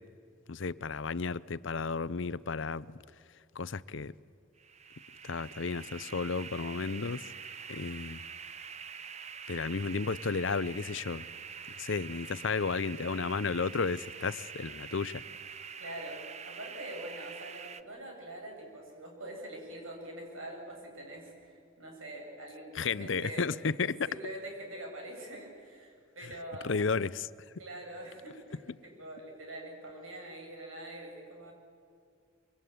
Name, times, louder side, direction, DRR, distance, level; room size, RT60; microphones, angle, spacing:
voice 1, 0.5-2.8 3.6-4.1 5.2-7.2 7.7-8.2 9.5-11.2 11.8-15.2 22.7-24.0 26.6-27.3, left 4 dB, 65° left, 0.6 m, -33 dB
sound 1, 4.6-17.8, right 6 dB, 35° right, 0.7 m, -45 dB
voice 2, 15.8-23.5 23.8-26.7 27.6-31.5, right 1 dB, 80° right, 7.8 m, -44 dB
25.0 x 24.0 x 9.4 m
head